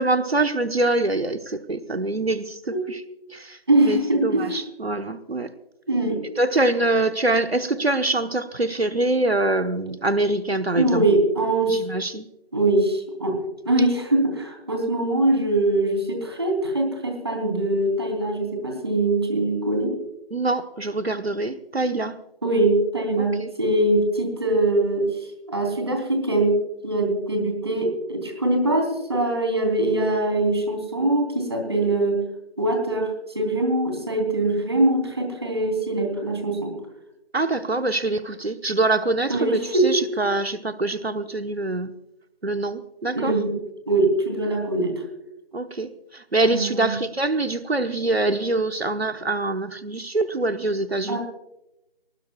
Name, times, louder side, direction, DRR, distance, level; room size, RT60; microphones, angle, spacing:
voice 1, 0.0-3.0 3.3-5.5 6.4-11.0 11.7-12.3 20.3-22.2 23.2-23.5 37.3-41.9 42.4-43.4 45.5-51.2, right 2 dB, 85° right, 9 dB, 1.2 m, -24 dB
voice 2, 3.7-4.5 5.9-6.2 10.7-11.8 12.5-13.4 13.6-19.9 22.4-25.1 25.5-26.6 26.8-32.2 32.6-36.7 39.3-39.9 43.1-43.5 43.9-45.0 46.5-46.9 51.1-51.2, right 2 dB, 25° right, 3 dB, 3.3 m, -22 dB
23.5 x 19.5 x 2.3 m, 0.88 s
figure-of-eight pair, 170°, 30 cm